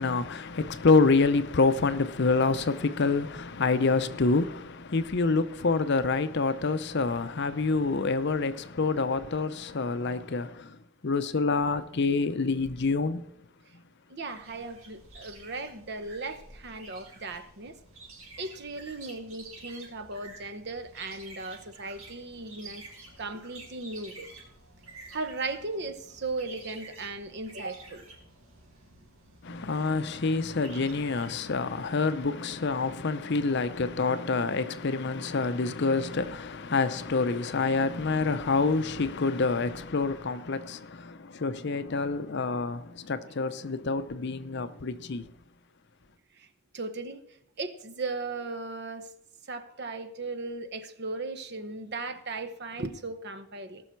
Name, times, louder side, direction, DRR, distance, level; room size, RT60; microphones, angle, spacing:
voice 1, 0.0-10.8 11.0-13.3 29.4-45.2, left 3 dB, 50° left, 0.6 m, -27 dB
voice 2, 14.1-17.7 18.4-22.8 23.2-24.3 25.1-28.0 31.2-31.3 46.3-46.5 46.7-47.2 47.6-49.1 49.5-53.8, right 3 dB, 50° right, 0.9 m, -37 dB
sound 1, 14.2-32.2, right 3 dB, 75° right, 4.7 m, -50 dB
18.5 x 6.2 x 4.6 m
head